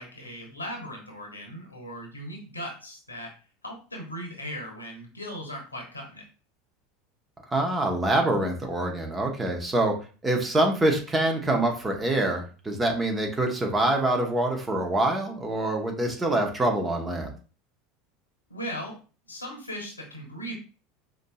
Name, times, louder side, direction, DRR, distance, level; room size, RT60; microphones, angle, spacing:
voice 1, 0.0-3.3 3.6-6.2 18.5-19.0 19.3-20.5, equal, 85° left, 1 dB, 1.1 m, -38 dB
voice 2, 7.5-10.0 10.2-17.3, right 1 dB, 15° right, 2 dB, 1.1 m, -25 dB
5.0 x 2.8 x 2.4 m, 0.36 s
figure-of-eight pair, 75°, 0 cm